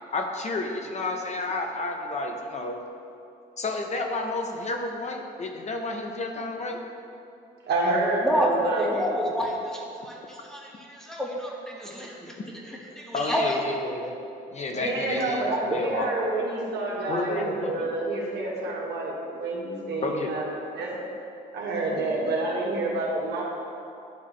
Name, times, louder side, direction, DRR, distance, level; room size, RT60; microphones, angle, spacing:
voice 1, 0.1-2.8 3.6-6.8 13.1-14.1 14.5-16.2 17.1-17.9 20.0-20.3, left 2 dB, 40° left, 2 dB, 0.7 m, -31 dB
voice 2, 7.7-8.9 14.7-20.5 20.7-20.9 21.5-23.4, right 2 dB, 65° right, -3 dB, 1.5 m, -28 dB
voice 3, 8.2-12.4 12.6-13.6 15.2-15.3 19.3-19.4, equal, 5° left, -3 dB, 1.5 m, -29 dB
10.5 x 3.6 x 3.2 m, 2.6 s
supercardioid pair, 65°, 19 cm